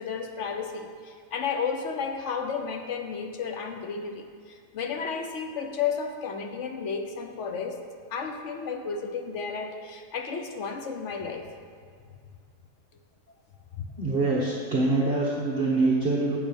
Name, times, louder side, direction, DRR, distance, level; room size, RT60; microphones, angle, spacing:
voice 1, 0.0-7.8 8.1-11.5 13.8-13.9, left 6 dB, 50° left, 4 dB, 1.1 m, -32 dB
voice 2, 14.0-16.4, right 3 dB, 40° right, -4 dB, 1.3 m, -24 dB
10.5 x 7.9 x 5.4 m, 2.1 s
omnidirectional pair, 1.7 m